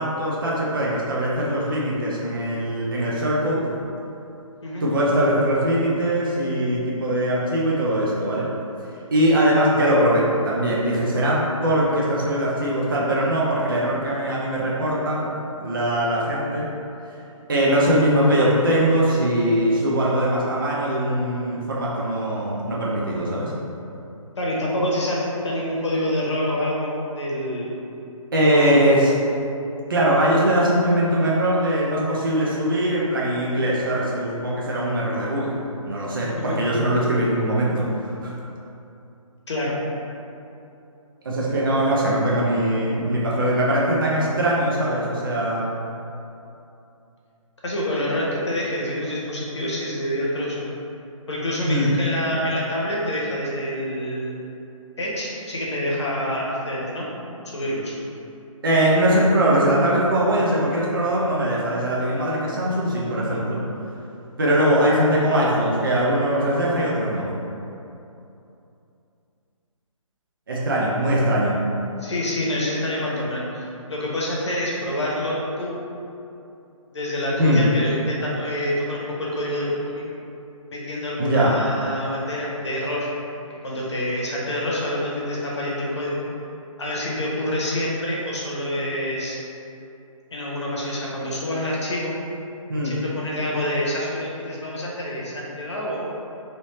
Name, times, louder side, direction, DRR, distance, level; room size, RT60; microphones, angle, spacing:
voice 1, 0.0-3.7 4.8-8.5 9.1-15.3 15.6-16.7 17.5-23.5 28.3-29.1 29.9-35.5 35.8-38.3 41.2-45.7 51.7-51.9 58.6-63.6 64.4-67.3 70.5-71.6 77.4-77.6 81.2-81.5 92.7-93.0, right 1 dB, 40° right, -5 dB, 0.5 m, -21 dB
voice 2, 24.4-27.7 28.5-28.8 36.3-36.6 39.5-39.8 47.6-50.7 51.3-54.3 55.0-57.1 57.5-57.9 72.0-75.7 76.9-80.1 80.7-83.1 83.6-86.2 86.8-89.4 90.3-92.1 92.8-96.0, left 1 dB, 55° left, -5 dB, 0.9 m, -27 dB
3.2 x 2.7 x 3.0 m, 2.8 s
hypercardioid pair, 175°, 18 cm